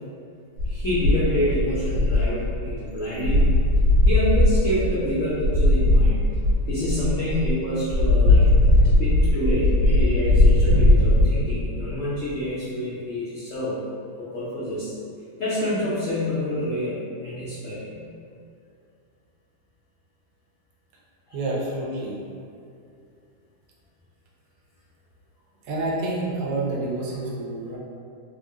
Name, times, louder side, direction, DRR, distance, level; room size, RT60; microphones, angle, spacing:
sound 1, 0.6-2.9 3.2-7.5 7.9-11.2, left 1 dB, 85° right, 1.9 m, -18 dB
voice 1, 0.7-3.4 4.1-6.2 6.7-8.5 9.0-13.8 14.3-14.9 15.4-17.0 17.2-18.0, left 1 dB, 65° left, -10 dB, 0.8 m, -27 dB
voice 2, 21.3-22.2 25.7-27.8, right 2 dB, 65° right, -4 dB, 1.1 m, -28 dB
3.6 x 2.1 x 3.5 m, 2.4 s
omnidirectional pair, 2.1 m